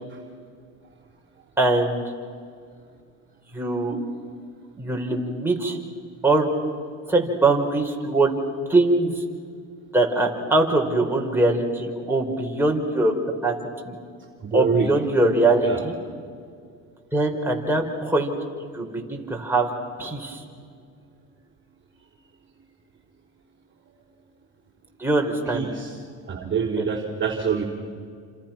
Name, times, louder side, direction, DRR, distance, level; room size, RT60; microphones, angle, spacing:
voice 1, 1.6-2.0 3.5-4.0 4.8-5.8 6.2-6.5 7.1-8.3 8.7-9.2 9.9-13.1 13.4-13.5 13.9-14.0 14.5-16.0 17.1-18.3 18.7-19.7 20.0-20.4 25.0-25.7 26.8-26.9, right 2 dB, 5° right, -1 dB, 5.2 m, -22 dB
voice 2, 14.4-14.9 15.6-15.8 20.3-20.4 25.5-26.0 26.3-27.6, right 6 dB, 30° right, -1 dB, 4.0 m, -26 dB
29.0 x 27.0 x 6.1 m, 2.1 s
supercardioid pair, 85°, 40 cm